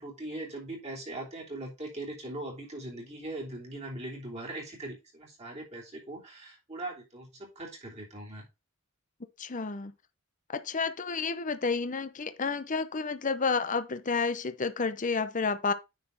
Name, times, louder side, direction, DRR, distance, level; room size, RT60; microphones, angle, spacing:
voice 1, 0.0-8.4, right 2 dB, 30° right, 3.2 m, -40 dB
voice 2, 9.4-9.9 10.5-15.7, left 4 dB, 35° left, 0.7 m, -30 dB
9.6 x 4.3 x 4.0 m
head